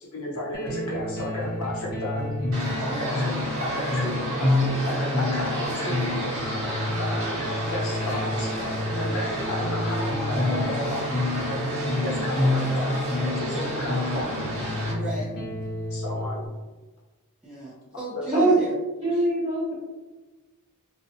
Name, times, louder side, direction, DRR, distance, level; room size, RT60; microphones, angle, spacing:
voice 1, 0.0-2.3 3.0-6.2 7.0-7.4 7.7-8.5 9.0-11.6 12.0-14.6 15.9-16.5 18.1-18.4, left 1 dB, 70° left, -4 dB, 0.8 m, -33 dB
sound 1, 0.5-16.5, left 1 dB, 45° left, 0.6 m, -28 dB
sound 2, 2.5-14.9, right 1 dB, 65° right, 0.9 m, -32 dB
voice 2, 2.8-3.2 4.0-4.2 15.0-15.3 17.4-18.7 19.1-19.2, right 1 dB, 5° right, -9 dB, 0.5 m, -35 dB
voice 3, 19.0-19.7, right 2 dB, 30° right, -8 dB, 1.1 m, -22 dB
2.6 x 2.1 x 2.6 m, 1.2 s
head